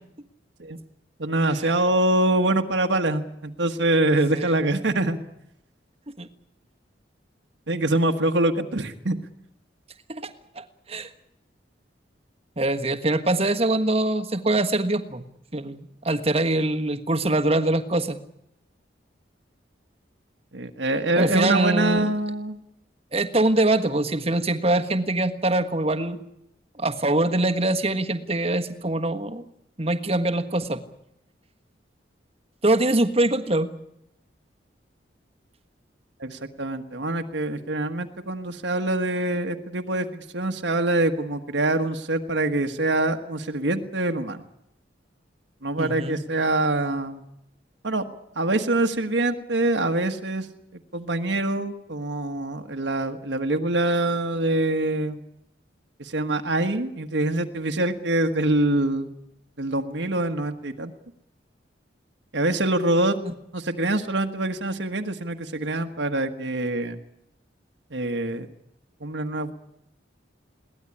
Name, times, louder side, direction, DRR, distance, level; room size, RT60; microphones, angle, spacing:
voice 1, 1.2-5.2 7.7-9.2 20.5-22.6 36.2-44.4 45.6-47.2 47.8-48.0 48.3-50.5 50.9-55.2 56.0-59.1 59.6-60.9 62.3-63.2 63.5-67.0 67.9-68.5 69.0-69.5, right 2 dB, 75° right, 5 dB, 1.5 m, -24 dB
voice 2, 4.3-4.6 6.2-6.3 10.2-11.1 12.6-15.2 15.5-18.2 21.2-22.1 23.1-26.2 26.8-29.4 29.8-30.8 32.6-33.7 45.8-46.2 63.2-63.3, right 2 dB, 35° right, 7 dB, 1.5 m, -23 dB
22.0 x 18.0 x 9.9 m, 0.80 s
head